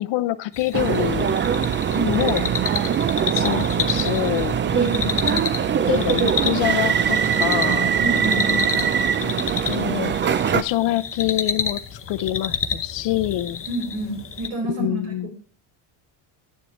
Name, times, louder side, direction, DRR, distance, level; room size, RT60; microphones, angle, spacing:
voice 1, 0.0-1.4 2.0-2.5 3.3-4.6 5.3-5.4 5.9-7.9 9.2-10.2 10.5-11.8 12.1-13.6 14.7-15.3, left 15 dB, 65° left, 0.7 m, -25 dB
sound 1, 0.5-14.5, left 6 dB, 25° left, 0.8 m, -30 dB
sound 2, 0.7-10.6, right 8 dB, 25° right, 0.3 m, -22 dB
voice 2, 4.7-5.4 8.0-8.9 13.7-15.3, equal, 90° right, 4.4 m, -29 dB
10.5 x 7.1 x 3.1 m
cardioid pair, 105°, 49 cm